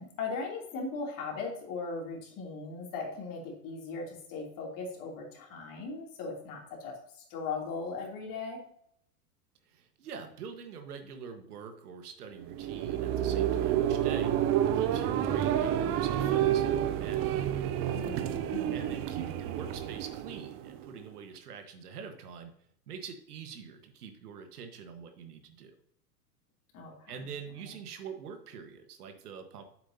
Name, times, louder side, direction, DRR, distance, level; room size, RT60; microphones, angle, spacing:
voice 1, 0.0-6.9 7.3-8.6 17.9-18.9 26.7-26.9, left 4 dB, 40° left, -1 dB, 3.1 m, -38 dB
voice 2, 9.6-14.5 14.7-17.5 18.7-22.5 22.9-25.7 27.1-29.6, right 6 dB, 70° right, 7 dB, 1.5 m, -45 dB
sound 1, 12.4-21.0, right 11 dB, 30° right, 0.6 m, -29 dB
9.3 x 7.8 x 2.8 m, 0.69 s
hypercardioid pair, 100°, 48 cm